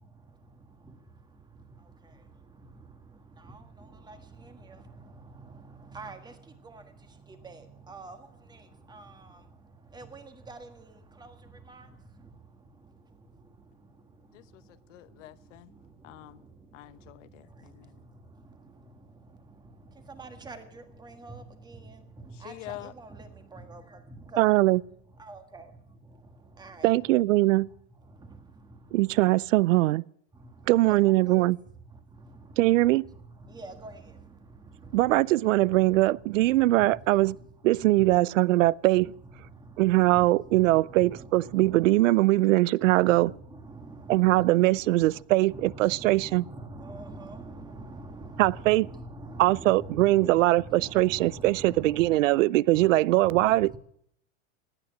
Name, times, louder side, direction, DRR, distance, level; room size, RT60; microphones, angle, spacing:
voice 1, 9.9-10.7 11.2-11.3 11.7-11.9 20.2-21.8 22.4-23.8 25.2-25.6 26.6-26.9 30.9-31.0 31.3-31.4 33.5-33.9 40.1-40.2 40.9-41.1 41.5-41.8 43.1-43.3 43.5-44.1 45.5-50.3 50.8-52.2 52.7-52.9 53.3-53.8, right 2 dB, 10° right, 1.5 m, -43 dB
voice 2, 14.9-15.7 16.0-16.4 16.7-18.0 22.4-22.9, left 15 dB, 75° left, 1.0 m, -46 dB
voice 3, 24.4-24.8 26.8-27.7 28.9-30.0 30.7-31.6 32.6-33.1 34.9-37.4 37.6-39.1 39.8-43.3 44.1-46.4 48.4-48.9 49.4-53.8, right 18 dB, 90° right, 0.5 m, -22 dB
17.5 x 8.9 x 8.8 m
supercardioid pair, 145°, 37 cm